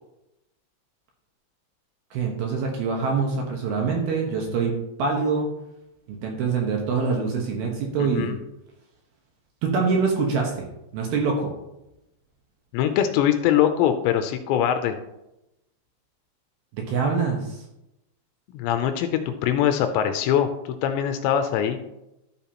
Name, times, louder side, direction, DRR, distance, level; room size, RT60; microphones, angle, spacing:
voice 1, 2.1-4.7 5.0-5.5 6.1-8.3 9.6-10.7 10.9-11.5 16.7-17.6, right 5 dB, 70° right, 1 dB, 2.7 m, -24 dB
voice 2, 8.0-8.4 12.7-15.0 18.5-20.5 20.8-21.8, left 10 dB, 80° left, 8 dB, 2.7 m, -22 dB
13.0 x 6.9 x 2.9 m, 0.90 s
omnidirectional pair, 5.3 m